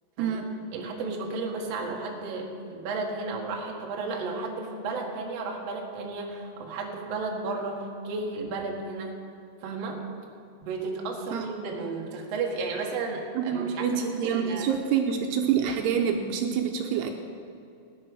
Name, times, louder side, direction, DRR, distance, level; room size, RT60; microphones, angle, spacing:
voice 1, 0.2-0.5 11.3-11.5 13.4-17.1, right 7 dB, 80° right, 4 dB, 2.7 m, -27 dB
voice 2, 0.7-9.2 9.6-10.0 10.6-14.7, right 3 dB, 55° right, 0 dB, 2.0 m, -33 dB
17.5 x 9.8 x 6.2 m, 2.4 s
omnidirectional pair, 4.9 m